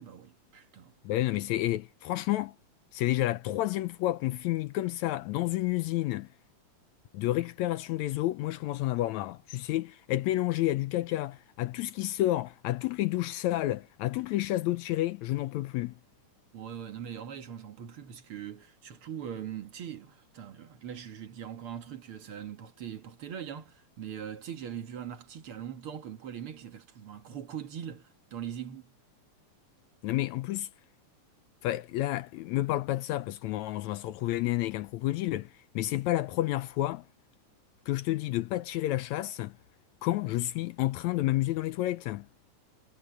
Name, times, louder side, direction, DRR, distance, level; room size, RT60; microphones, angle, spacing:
voice 1, 0.0-0.9 16.5-28.9, right 9 dB, 50° right, 2.0 m, -41 dB
voice 2, 1.0-2.5 2.9-6.3 7.1-16.0 30.0-30.7 31.6-37.1 37.9-39.6 40.0-42.3, left 15 dB, 80° left, 1.8 m, -30 dB
omnidirectional pair, 3.5 m